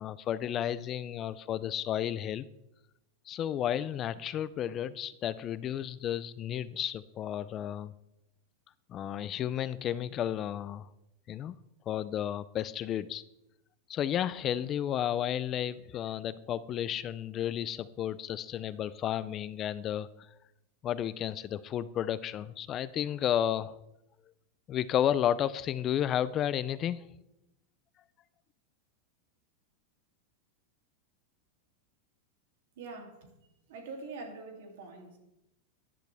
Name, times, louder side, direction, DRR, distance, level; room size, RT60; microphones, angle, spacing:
voice 1, 0.0-2.5 3.3-7.9 8.9-10.9 11.3-11.6 11.9-13.2 13.9-20.1 20.8-23.7 24.7-27.1, left 10 dB, 25° left, 16 dB, 0.3 m, -32 dB
voice 2, 32.8-33.3 33.7-35.2, right 3 dB, 70° right, 3 dB, 2.8 m, -44 dB
14.5 x 11.0 x 3.4 m, 0.88 s
supercardioid pair, 170°, 0 cm